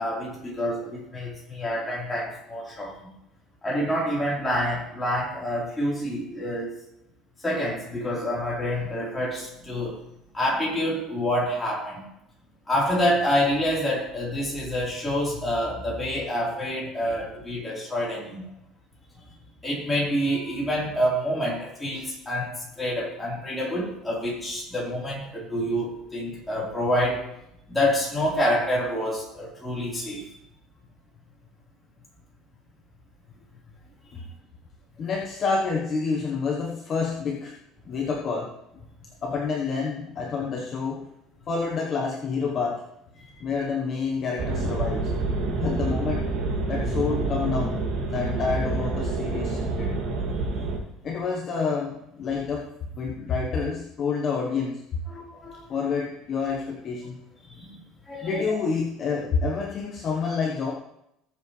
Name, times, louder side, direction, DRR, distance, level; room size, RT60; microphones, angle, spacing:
voice 1, 0.0-2.9 3.6-6.7 7.4-9.9 10.3-12.0 12.7-18.5 19.6-27.2 27.7-30.2 55.1-55.6 57.5-57.8 58.1-58.6, equal, 10° left, -5 dB, 4.2 m, -27 dB
voice 2, 35.0-37.6 37.8-38.5 39.2-41.1 41.5-42.8 43.4-45.1 45.5-46.3 46.7-47.8 48.1-49.9 51.0-52.7 53.0-54.8 55.7-57.2 58.2-60.7, left 5 dB, 35° left, 0 dB, 1.2 m, -28 dB
sound 1, 44.4-50.8, right 3 dB, 50° right, 2.6 m, -27 dB
18.5 x 7.6 x 3.4 m, 0.83 s
cardioid pair, 150°, 0 cm